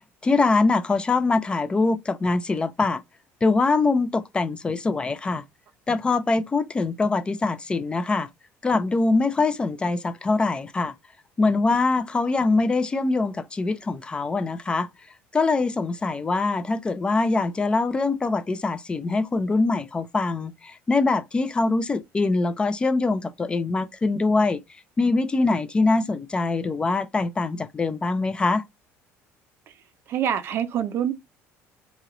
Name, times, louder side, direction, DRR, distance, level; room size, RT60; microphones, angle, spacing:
voice 1, 0.0-3.0 3.4-5.4 5.9-8.3 8.6-10.9 11.4-14.9 15.3-24.6 25.0-28.6, left 3 dB, 20° left, 0.4 m, -23 dB
voice 2, 30.1-31.1, right 9 dB, 50° right, 0.5 m, -25 dB
3.0 x 2.8 x 3.7 m
cardioid pair, 130°, 5 cm